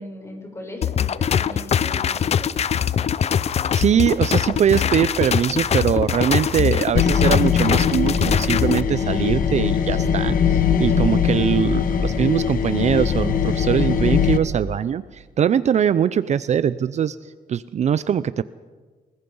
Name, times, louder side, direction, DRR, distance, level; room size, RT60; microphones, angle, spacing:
voice 1, 0.0-2.5, left 1 dB, 15° left, 0 dB, 7.8 m, -37 dB
sound 1, 0.8-8.8, left 8 dB, 45° left, 0.6 m, -22 dB
voice 2, 3.7-17.2 17.5-18.4, right 8 dB, 50° right, 16 dB, 0.6 m, -21 dB
sound 2, 4.0-14.0, right 7 dB, 90° right, 3.1 m, -41 dB
sound 3, 6.9-14.4, left 7 dB, 65° left, 1.6 m, -21 dB
28.5 x 20.5 x 5.5 m, 1.4 s
cardioid pair, 120°, 16 cm